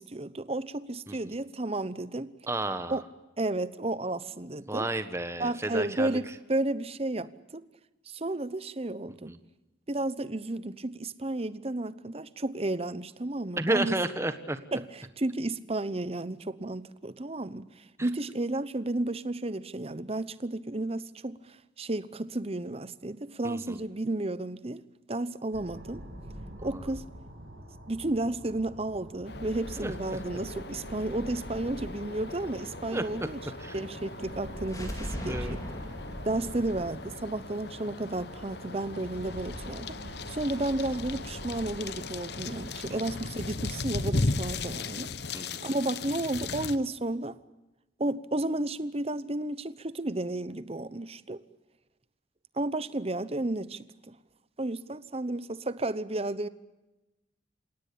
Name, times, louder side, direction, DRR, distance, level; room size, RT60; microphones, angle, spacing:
voice 1, 0.0-2.3 2.9-3.0 3.4-4.9 5.4-7.6 8.1-9.3 9.9-14.0 14.7-24.8 25.1-26.0 26.6-27.1 27.9-33.4 33.7-35.6 36.2-40.0 40.3-45.1 45.6-47.4 48.0-51.4 52.6-54.1 54.6-56.5, right 2 dB, 35° right, 0.9 m, -32 dB
voice 2, 2.5-3.0 4.7-6.2 9.3-9.4 13.6-14.6 18.0-18.1 23.4-23.8 26.6-26.8 29.8-29.9 32.9-33.0 33.4-33.8 35.3-35.6 42.9-43.0 45.3-45.6, right 1 dB, 15° right, 1.3 m, -32 dB
sound 1, 25.5-44.6, equal, 70° right, 6.3 m, -44 dB
sound 2, 29.3-46.8, left 3 dB, 60° left, 1.0 m, -38 dB
sound 3, 34.6-38.5, equal, 20° left, 4.5 m, -40 dB
28.0 x 17.5 x 8.6 m
head